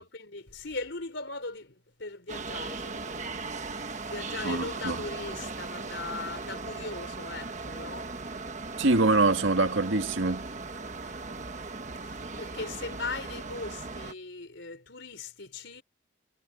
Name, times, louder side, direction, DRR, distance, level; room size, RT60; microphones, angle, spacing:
voice 1, 0.0-3.3 3.6-3.8 4.1-8.1 12.0-15.8, left 3 dB, 65° left, 4.2 m, -39 dB
sound 1, 2.3-14.1, right 3 dB, 40° right, 1.3 m, -38 dB
voice 2, 4.4-5.0 8.8-10.5, right 2 dB, 80° right, 1.9 m, -24 dB
head